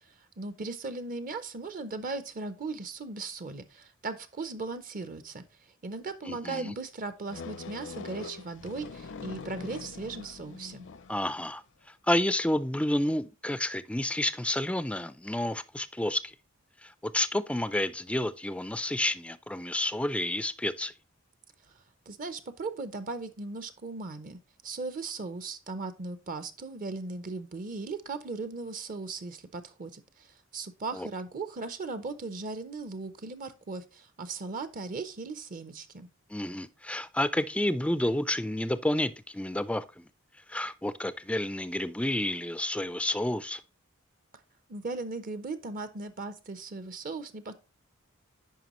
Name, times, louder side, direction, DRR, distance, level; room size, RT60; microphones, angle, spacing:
voice 1, 0.0-10.9 22.1-36.1 44.7-47.6, right 3 dB, 40° right, 0.6 m, -38 dB
voice 2, 6.3-6.7 11.1-11.6 12.1-16.3 16.8-20.9 30.9-31.1 36.3-40.1 40.5-43.6, left 1 dB, 5° left, 0.3 m, -30 dB
sound 1, 7.3-11.3, left 4 dB, 60° left, 0.5 m, -43 dB
9.3 x 5.2 x 3.0 m
head